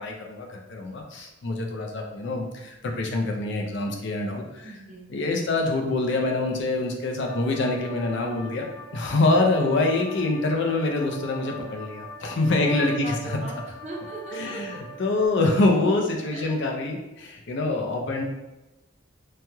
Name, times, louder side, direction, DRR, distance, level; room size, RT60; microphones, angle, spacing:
voice 1, 0.0-4.7 5.1-8.6 8.9-13.4 14.3-14.7 15.0-18.2, left 2 dB, 60° left, 2 dB, 0.5 m, -25 dB
voice 2, 4.6-5.1 9.6-9.7 12.6-13.5 13.8-14.8 16.3-16.5, right 1 dB, 35° right, -2 dB, 0.5 m, -38 dB
sound 1, 7.2-15.3, right 1 dB, 35° left, 1.2 m, -42 dB
3.1 x 2.2 x 2.8 m, 1.0 s
head